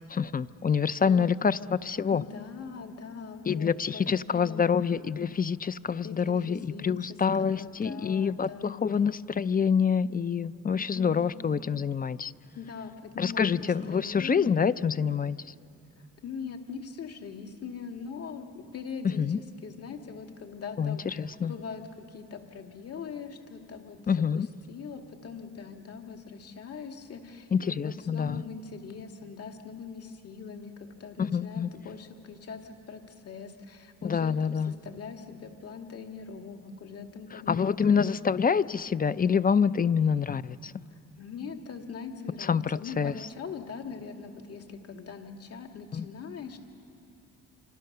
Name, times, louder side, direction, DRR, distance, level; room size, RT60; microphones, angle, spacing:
voice 1, 0.1-2.2 3.5-12.3 13.2-15.5 19.0-19.4 20.8-21.5 24.1-24.5 27.5-28.4 31.2-31.7 34.0-34.7 37.3-40.7 42.4-43.1 45.9-46.1, left 6 dB, 30° left, 16 dB, 0.5 m, -26 dB
voice 2, 1.0-1.5 2.1-4.6 6.0-8.9 10.7-11.3 12.5-14.6 16.2-38.2 39.6-39.9 41.2-46.6, left 5 dB, 50° left, 4 dB, 2.4 m, -42 dB
28.0 x 26.0 x 6.8 m, 2.8 s
cardioid pair, 90°, 30 cm